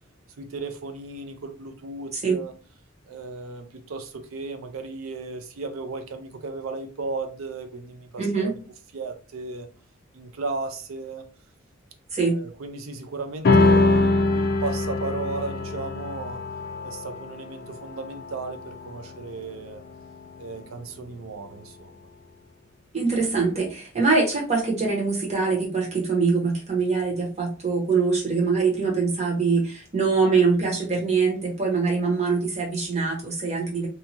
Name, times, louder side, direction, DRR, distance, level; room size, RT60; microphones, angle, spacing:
voice 1, 0.4-2.5 3.1-8.6 8.9-9.7 10.1-11.2 12.2-16.4 16.8-19.8 20.4-21.9, right 3 dB, 85° right, 0.5 m, -35 dB
voice 2, 8.2-8.5 12.1-12.4 22.9-33.9, right 4 dB, 35° right, 1.1 m, -23 dB
sound 1, 13.4-20.2, left 2 dB, 50° left, 0.4 m, -24 dB
2.8 x 2.3 x 2.8 m
head